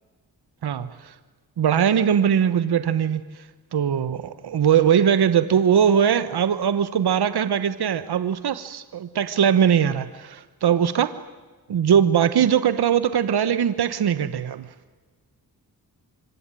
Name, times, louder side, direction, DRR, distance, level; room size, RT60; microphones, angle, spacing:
voice 1, 0.6-1.1 1.6-3.4 3.7-11.1 11.7-14.7, right 8 dB, 80° right, 13 dB, 1.2 m, -21 dB
26.0 x 25.5 x 9.1 m, 1.4 s
cardioid pair, 70°, 38 cm